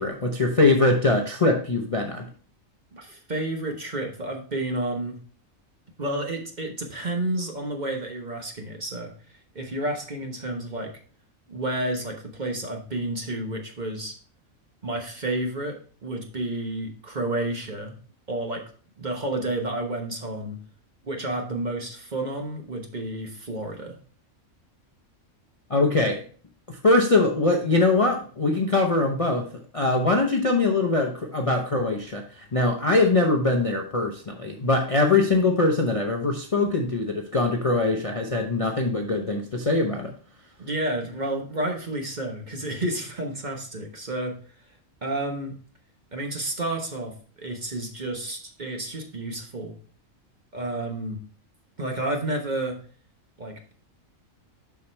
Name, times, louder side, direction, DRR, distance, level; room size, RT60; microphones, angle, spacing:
voice 1, 0.0-2.3 25.7-26.2 26.7-29.5 29.7-40.1, left 2 dB, 35° left, 1 dB, 0.7 m, -22 dB
voice 2, 2.9-5.2 6.0-9.1 9.5-10.9 11.5-14.1 14.8-18.0 18.3-18.6 19.0-20.6 21.0-23.9 40.6-44.3 45.0-45.5 46.1-49.7 50.5-51.2 51.8-52.8 53.4-53.7, right 1 dB, 35° right, 2 dB, 1.2 m, -30 dB
7.0 x 6.1 x 3.3 m, 0.42 s
omnidirectional pair, 1.4 m